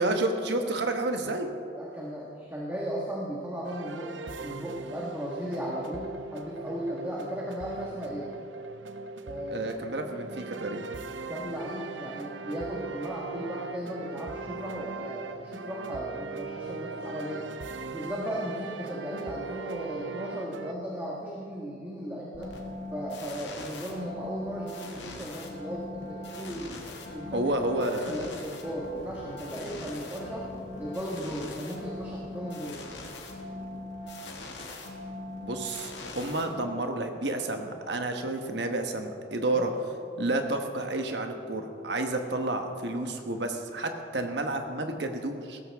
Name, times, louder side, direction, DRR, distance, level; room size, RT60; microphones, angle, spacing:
voice 1, 0.0-1.5 9.5-10.8 27.2-28.3 35.4-39.7 40.2-45.6, right 2 dB, 70° right, 5 dB, 1.2 m, -30 dB
voice 2, 1.7-8.3 9.3-9.7 11.3-17.5 17.9-22.6 22.9-26.7 27.1-27.5 28.0-30.5 30.8-32.8 39.5-39.7, equal, 10° right, -5 dB, 1.4 m, -36 dB
sound 1, 3.6-20.7, right 4 dB, 85° right, 0.6 m, -39 dB
sound 2, 22.3-37.0, left 1 dB, 75° left, 1.9 m, -41 dB
16.5 x 14.0 x 3.5 m, 2.5 s
head